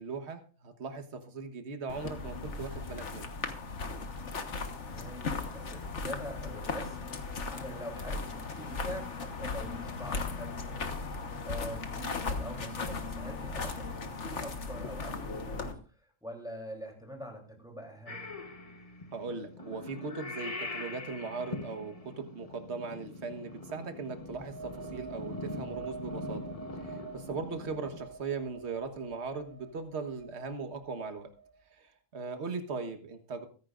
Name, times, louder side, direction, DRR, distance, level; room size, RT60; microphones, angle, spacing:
voice 1, 0.0-3.3 11.5-11.7 19.1-26.4 26.8-31.3 31.7-33.5, right 4 dB, 55° right, 7 dB, 1.6 m, -39 dB
sound 1, 1.9-15.7, left 4 dB, 65° left, 1.7 m, -37 dB
voice 2, 4.8-7.0 7.5-10.7 11.4-18.3 25.3-25.8, equal, 5° right, 1 dB, 3.3 m, -44 dB
Purr / Meow, 18.1-28.0, left 2 dB, 30° left, 1.2 m, -43 dB
sound 2, 24.2-31.7, right 5 dB, 25° right, 1.0 m, -48 dB
23.0 x 10.5 x 2.5 m, 0.38 s
omnidirectional pair, 1.3 m